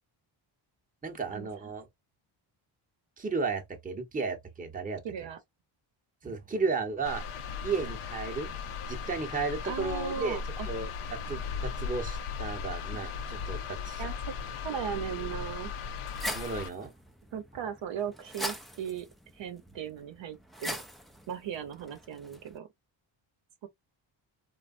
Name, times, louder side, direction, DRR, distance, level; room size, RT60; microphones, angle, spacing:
voice 1, 1.0-1.8 3.2-5.0 6.2-7.3 7.6-8.6 8.9-10.4 10.6-14.0 16.3-16.9, right 4 dB, 15° right, 0.8 m, -34 dB
voice 2, 5.0-5.4 9.6-10.7 14.0-14.3 14.6-15.7 17.3-19.1 19.3-20.8 21.3-22.7 23.6-23.7, right 8 dB, 65° right, 0.8 m, -37 dB
sound 1, 7.0-16.7, left 6 dB, 80° left, 0.6 m, -37 dB
sound 2, 15.8-22.6, right 1 dB, ahead, 0.3 m, -42 dB
3.2 x 2.3 x 2.4 m
cardioid pair, 95°, 49 cm